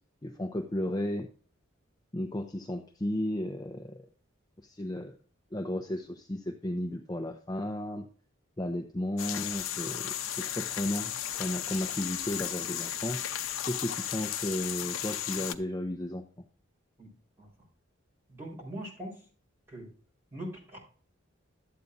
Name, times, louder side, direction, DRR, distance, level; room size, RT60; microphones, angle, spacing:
voice 1, 0.2-1.3 2.1-4.0 4.6-5.1 5.5-8.1 8.6-13.2 13.6-16.2, left 1 dB, 20° left, 4 dB, 0.6 m, -34 dB
sound 1, 9.2-15.5, left 10 dB, 80° left, 0.6 m, -35 dB
voice 2, 18.3-19.2 19.7-19.9 20.3-20.8, equal, 10° right, -5 dB, 4.3 m, -41 dB
12.0 x 8.3 x 2.6 m, 0.41 s
head